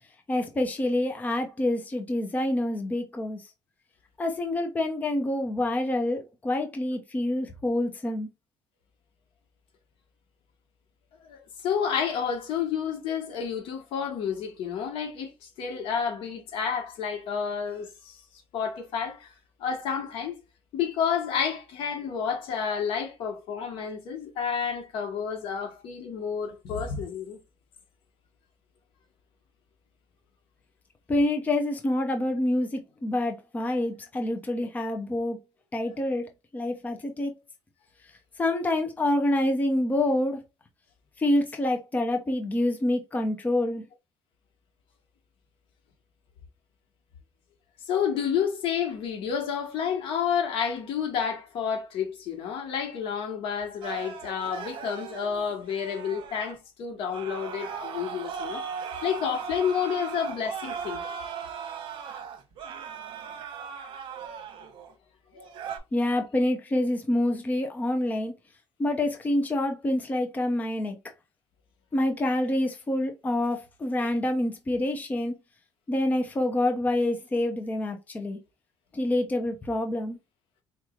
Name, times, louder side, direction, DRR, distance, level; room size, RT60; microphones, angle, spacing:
voice 1, 0.3-3.4 4.2-8.3 31.1-35.4 35.7-37.3 38.4-40.4 41.2-43.8 65.9-68.3 68.8-71.0 71.9-75.3 75.9-78.4 78.9-80.2, left 1 dB, 15° left, 0.6 m, -27 dB
voice 2, 11.3-18.2 18.5-19.3 19.6-20.4 20.7-27.4 47.8-58.6 59.0-61.0 62.2-62.3 65.3-65.4, left 7 dB, 75° left, 1.4 m, -30 dB
sound 1, 53.8-56.5 57.1-64.9 65.3-65.8, right 7 dB, 65° right, 1.0 m, -38 dB
4.5 x 3.1 x 2.4 m
cardioid pair, 145°, 9 cm